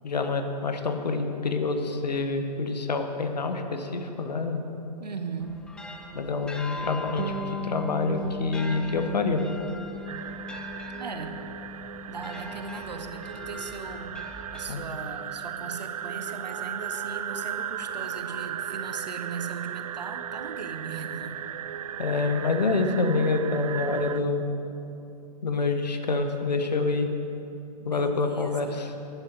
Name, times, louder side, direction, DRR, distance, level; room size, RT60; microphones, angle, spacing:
voice 1, 0.0-4.6 6.1-9.4 14.7-14.8 22.0-24.4 25.4-27.1 27.8-28.9, left 3 dB, 75° left, 6 dB, 1.3 m, -27 dB
voice 2, 5.0-5.7 11.0-11.4 12.1-14.2 14.5-21.4 27.8-28.8, right 5 dB, 80° right, 7 dB, 1.1 m, -38 dB
sound 1, 5.4-15.3, left 2 dB, 5° left, 0.4 m, -43 dB
Bass guitar, 7.2-16.8, left 1 dB, 35° right, 0.8 m, -40 dB
sound 2, 10.1-24.2, right 10 dB, 60° right, 0.5 m, -36 dB
12.0 x 10.5 x 5.4 m, 2.8 s
figure-of-eight pair, 120°, 21 cm